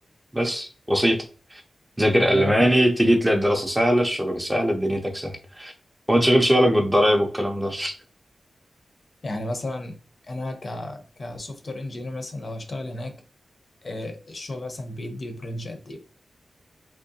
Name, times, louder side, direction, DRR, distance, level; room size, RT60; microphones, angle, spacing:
voice 1, 0.3-1.2 1.5-1.6 2.0-5.7 6.1-7.9, equal, 10° right, 3 dB, 0.4 m, -21 dB
voice 2, 2.2-2.7 9.2-10.0 10.2-13.2 13.8-16.0, left 1 dB, 40° left, 5 dB, 0.6 m, -33 dB
3.6 x 2.9 x 2.7 m, 0.39 s
wide cardioid pair, 140°, 0 cm